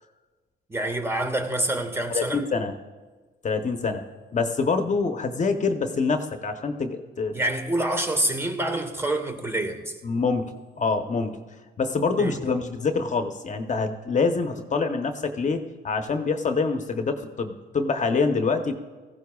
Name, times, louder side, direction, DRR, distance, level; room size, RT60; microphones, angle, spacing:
voice 1, 0.7-2.4 7.3-10.0 12.2-12.4, right 1 dB, 15° right, 1.3 m, -27 dB
voice 2, 2.1-2.7 3.4-4.0 4.3-7.3 10.0-11.3 11.8-18.7, left 4 dB, 40° left, 1.0 m, -25 dB
17.5 x 15.0 x 2.4 m
cardioid pair, 90°, 19 cm